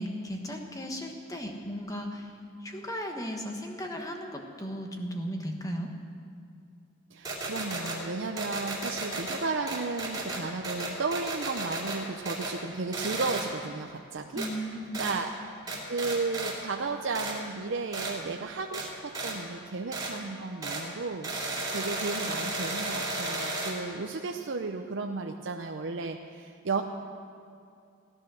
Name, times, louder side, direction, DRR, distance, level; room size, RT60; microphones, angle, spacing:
voice 1, 0.0-2.3 2.6-5.9 14.3-15.0, equal, 15° left, 3 dB, 1.2 m, -36 dB
voice 2, 7.1-14.4 15.0-15.3 15.9-26.8, right 3 dB, 60° right, 3 dB, 0.6 m, -34 dB
sound 1, 7.2-8.0 8.4-9.4 9.7-12.0 12.3-12.6 12.9-13.5 14.4-14.5 14.9-15.2 15.7-16.5 17.1-17.4 17.9-18.1 18.7-18.9 19.1-19.4 19.9-20.1 20.6-20.8 21.2-23.7, right 2 dB, 20° right, 2.5 m, -34 dB
16.5 x 10.5 x 6.3 m, 2.5 s
head